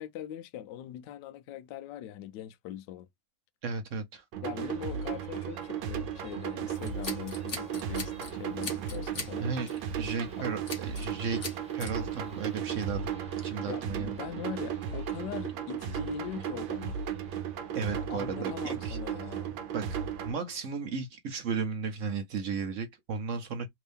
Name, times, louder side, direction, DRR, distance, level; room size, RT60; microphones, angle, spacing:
voice 1, 0.0-3.1 4.4-9.5 10.4-10.5 13.6-17.0 17.9-19.7, left 11 dB, 70° left, 1.1 m, -41 dB
voice 2, 3.6-4.2 9.4-11.4 11.7-13.1 13.4-14.2 17.7-19.0 19.7-19.8 20.2-23.7, right 5 dB, 60° right, 0.8 m, -34 dB
sound 1, 4.3-20.3, right 8 dB, 80° right, 1.4 m, -35 dB
sound 2, 4.5-18.1, right 2 dB, 10° right, 0.4 m, -55 dB
Scissors, 6.8-8.3 8.6-9.3 9.7-9.9 10.7-11.1 11.4-11.9, left 4 dB, 40° left, 1.2 m, -39 dB
3.5 x 2.7 x 3.3 m
omnidirectional pair, 2.2 m